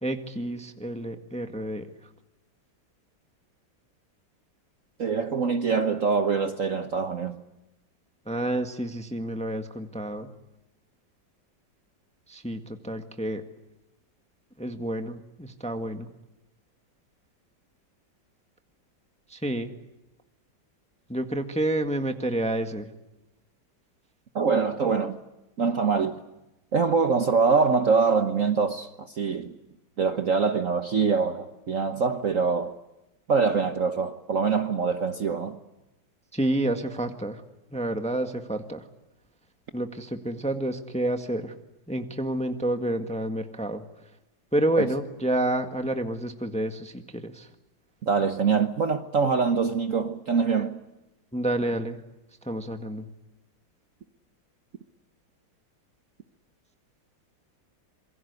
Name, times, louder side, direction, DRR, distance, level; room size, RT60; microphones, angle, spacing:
voice 1, 0.0-1.9 8.3-10.3 12.3-13.4 14.6-16.1 19.3-19.7 21.1-22.9 36.3-37.4 37.7-38.8 39.7-41.5 41.9-43.8 44.5-47.5 51.3-52.0 52.4-53.1, right 1 dB, 5° left, 1.5 m, -29 dB
voice 2, 5.0-7.4 24.3-25.2 25.6-26.2 26.7-29.5 30.0-32.7 33.3-35.6 44.8-44.9 48.0-50.8, right 5 dB, 45° right, 1.4 m, -24 dB
27.0 x 23.5 x 8.1 m
omnidirectional pair, 2.1 m